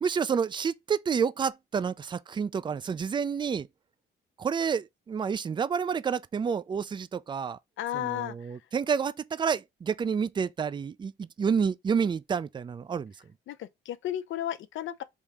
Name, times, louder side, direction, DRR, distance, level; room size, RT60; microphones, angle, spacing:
voice 1, 0.0-3.7 4.4-7.6 7.9-13.1, right 6 dB, 25° right, 0.3 m, -29 dB
voice 2, 7.8-8.6 13.5-15.0, left 12 dB, 75° left, 0.6 m, -34 dB
3.6 x 2.7 x 4.7 m
cardioid pair, 90°, 20 cm